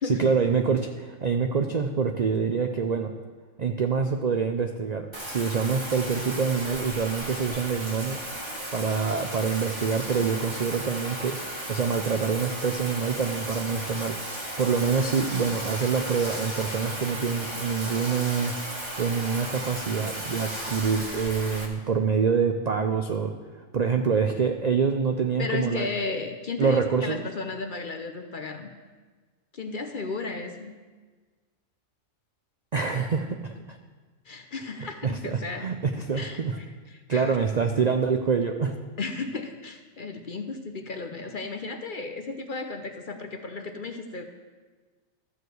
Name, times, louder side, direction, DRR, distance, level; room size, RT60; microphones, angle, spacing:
voice 1, 0.0-3.1 3.6-8.2 8.7-11.4 11.7-18.5 19.0-23.3 23.7-25.9 26.6-27.3 32.7-33.8 35.0-36.6 37.1-38.8, right 5 dB, 55° right, 5 dB, 0.4 m, -26 dB
Bathtub (filling or washing), 5.1-21.7, right 1 dB, 20° right, 1.5 m, -35 dB
voice 2, 25.4-28.7 29.5-30.7 34.3-35.7 36.1-36.4 36.9-37.4 39.0-44.2, left 3 dB, 45° left, 6 dB, 0.7 m, -34 dB
13.0 x 4.8 x 7.9 m, 1.4 s
omnidirectional pair, 1.4 m